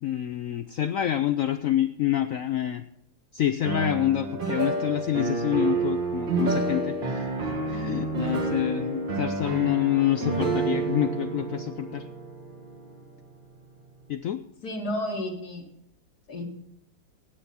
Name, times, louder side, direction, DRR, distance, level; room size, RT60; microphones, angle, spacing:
voice 1, 0.0-2.8 3.3-12.1 14.1-14.4, left 12 dB, 90° left, 11 dB, 0.7 m, -27 dB
sound 1, 3.6-13.6, right 3 dB, 75° right, 2.6 m, -29 dB
voice 2, 14.6-15.6 16.3-16.4, left 1 dB, 55° left, 2 dB, 2.5 m, -31 dB
16.0 x 9.5 x 4.3 m, 0.77 s
omnidirectional pair, 2.0 m